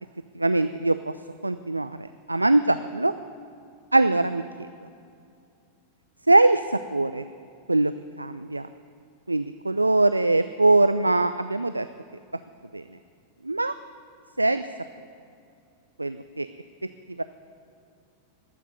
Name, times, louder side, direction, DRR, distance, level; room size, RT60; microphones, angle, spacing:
voice 1, 0.3-1.1 1.4-3.1 3.9-4.9 6.3-7.3 7.7-7.9 8.2-8.7 9.3-11.9 12.7-12.8 13.4-13.7 14.4-14.6 16.0-16.5 17.2-17.3, right 2 dB, 85° right, 12 dB, 0.3 m, -22 dB
12.0 x 8.3 x 9.3 m, 2.5 s
figure-of-eight pair, 90°, 0 cm